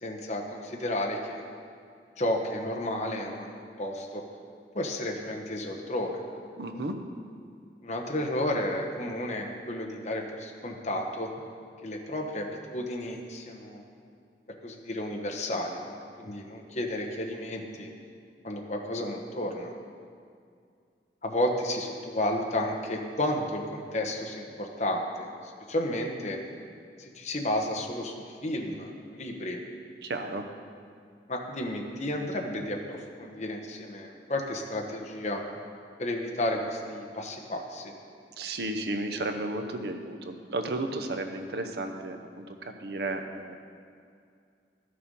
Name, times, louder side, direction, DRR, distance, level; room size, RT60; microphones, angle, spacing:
voice 1, 0.0-1.4 2.2-4.2 4.7-6.2 7.8-11.3 11.8-13.8 14.6-17.9 18.4-19.7 21.2-26.4 27.0-29.6 31.3-35.4 36.0-37.9, left 1 dB, 40° left, 1 dB, 1.1 m, -32 dB
voice 2, 6.6-6.9 30.0-30.4 38.4-43.6, right 2 dB, 65° right, 5 dB, 0.8 m, -33 dB
13.0 x 6.7 x 5.4 m, 2.3 s
head